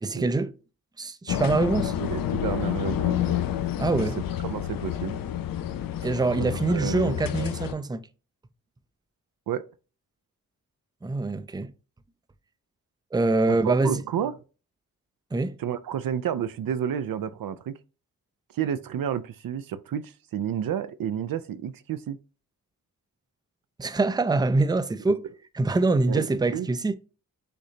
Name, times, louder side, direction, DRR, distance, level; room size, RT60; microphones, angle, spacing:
voice 1, 0.0-0.5 1.0-1.9 3.8-4.2 6.0-8.0 11.0-11.7 13.1-14.0 15.3-15.6 23.8-25.3 25.5-26.9, right 3 dB, 10° right, 0.5 m, -24 dB
sound 1, 1.3-7.7, left 11 dB, 70° left, 0.5 m, -29 dB
voice 2, 2.0-3.4 4.0-4.1 4.4-5.2 6.4-7.2 9.5-9.6 13.6-14.3 15.6-17.8 18.5-22.2 26.1-26.3 26.5-26.7, right 9 dB, 70° right, 0.5 m, -30 dB
6.6 x 2.6 x 2.8 m
cardioid pair, 45°, 36 cm